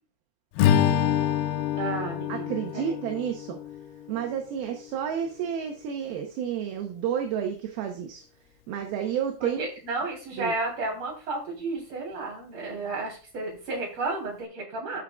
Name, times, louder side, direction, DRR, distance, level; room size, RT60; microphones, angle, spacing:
Strum, 0.6-5.0, left 10 dB, 80° left, 2.4 m, -27 dB
voice 1, 1.8-3.0 9.4-15.0, right 3 dB, 40° right, -1 dB, 4.1 m, -32 dB
voice 2, 2.3-3.6 4.1-8.2 8.7-9.7 10.4-10.5, right 8 dB, 75° right, 4 dB, 2.6 m, -31 dB
13.0 x 6.4 x 2.3 m, 0.37 s
omnidirectional pair, 4.9 m